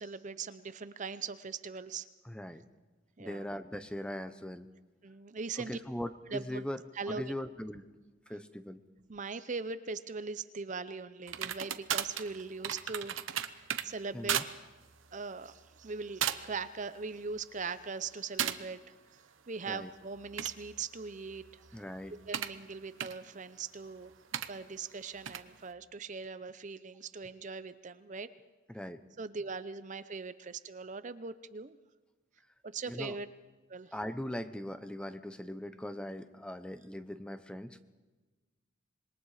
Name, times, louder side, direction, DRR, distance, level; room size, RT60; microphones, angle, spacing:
voice 1, 0.0-2.1 3.2-3.5 5.0-5.8 6.3-6.7 6.9-7.3 9.1-13.2 13.5-14.4 15.1-21.4 21.7-21.8 22.3-24.1 24.5-28.3 29.2-31.8 32.6-33.3 33.7-33.9, right 4 dB, 40° right, 13 dB, 0.6 m, -40 dB
voice 2, 2.2-2.6 3.2-4.7 5.6-6.8 7.1-7.8 8.3-8.8 14.1-14.4 19.7-19.9 21.7-22.2 28.7-29.0 32.9-33.2 33.9-37.8, left 1 dB, 5° left, 11 dB, 0.7 m, -40 dB
sound 1, 11.3-13.9 14.3-14.5 14.9-15.1 15.8-15.9 16.2-16.6 17.0-17.5 18.4-18.6 20.1-22.6 23.0-23.1 24.3-24.5 25.2-25.4, right 9 dB, 75° right, 0.9 m, -35 dB
26.5 x 22.0 x 4.9 m, 1.2 s
head